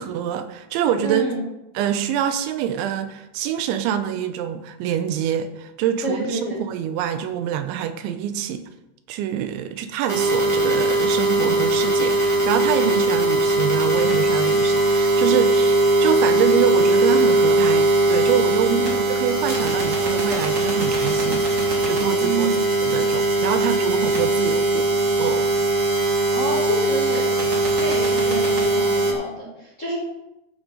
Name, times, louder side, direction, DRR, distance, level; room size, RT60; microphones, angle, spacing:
voice 1, 0.0-1.3 1.8-8.7 9.1-18.8 19.1-21.5 21.9-22.5 22.8-24.9 25.2-25.5, right 9 dB, 85° right, 9 dB, 3.1 m, -25 dB
voice 2, 1.0-1.5 6.0-6.6 18.7-19.0 22.2-22.5 26.3-27.2 27.8-30.0, right 1 dB, 25° left, -5 dB, 1.8 m, -27 dB
sound 1, 10.1-29.1, right 2 dB, 70° right, 0.7 m, -20 dB
14.0 x 6.4 x 5.4 m, 0.90 s
omnidirectional pair, 5.4 m